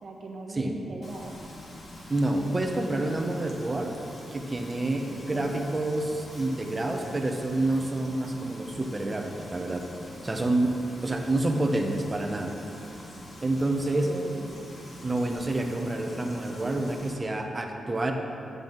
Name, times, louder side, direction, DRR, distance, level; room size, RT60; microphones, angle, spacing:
voice 1, 0.0-1.3 5.1-5.6 14.0-14.4, right 2 dB, 50° right, -1 dB, 1.5 m, -40 dB
Frying (food), 1.0-17.1, left 1 dB, 55° left, 2.1 m, -45 dB
voice 2, 2.1-3.9 4.3-9.8 10.2-12.5 13.4-14.1 15.0-18.1, right 2 dB, 25° right, 3 dB, 0.9 m, -28 dB
10.5 x 8.0 x 4.0 m, 2.7 s
cardioid pair, 105°, 0 cm